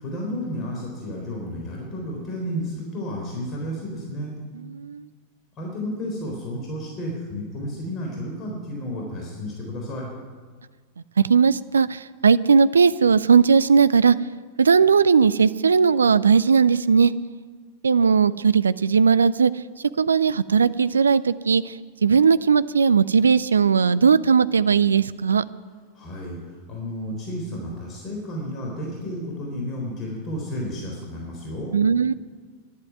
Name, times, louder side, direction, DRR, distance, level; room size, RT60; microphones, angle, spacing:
voice 1, 0.0-4.3 5.6-10.1 25.9-31.7, equal, 30° left, -1 dB, 3.8 m, -32 dB
voice 2, 4.7-5.1 11.3-14.2 14.6-17.1 17.8-19.5 20.0-21.7 22.0-25.4 31.7-32.1, right 6 dB, 70° right, 16 dB, 0.4 m, -18 dB
11.5 x 11.0 x 9.5 m, 1.5 s
figure-of-eight pair, 90°, 0 cm